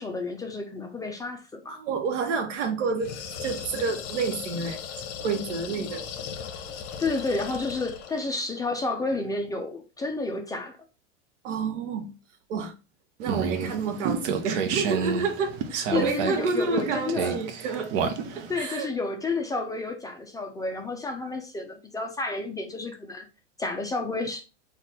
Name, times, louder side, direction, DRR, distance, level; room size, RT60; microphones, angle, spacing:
voice 1, 0.0-1.8 7.0-10.8 15.9-17.4 18.5-23.3 23.6-24.4, left 3 dB, 10° left, 0.5 m, -30 dB
voice 2, 1.8-3.1 3.4-4.8 5.2-6.0 11.4-12.1 12.5-12.7 13.2-17.9 18.6-18.9, right 4 dB, 85° right, 1.1 m, -29 dB
sound 1, 3.0-8.3, left 7 dB, 45° left, 0.9 m, -37 dB
sound 2, 13.2-18.6, right 6 dB, 50° right, 0.8 m, -30 dB
4.0 x 2.5 x 4.3 m
hypercardioid pair, 115°, 36 cm